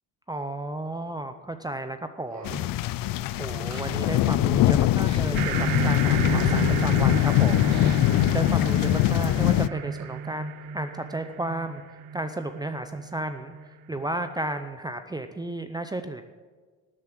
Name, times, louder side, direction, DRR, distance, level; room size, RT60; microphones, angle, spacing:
voice 1, 0.3-2.7 3.4-11.8 12.1-13.5 13.9-16.2, right 1 dB, 10° right, 8 dB, 0.6 m, -33 dB
Laughter, 2.3-10.3, right 3 dB, 50° right, 2.5 m, -46 dB
sound 1, 2.5-9.7, left 15 dB, 75° left, 0.5 m, -22 dB
sound 2, 5.3-14.3, right 7 dB, 90° right, 0.8 m, -32 dB
13.0 x 7.3 x 7.5 m, 1.5 s
cardioid pair, 105°, 34 cm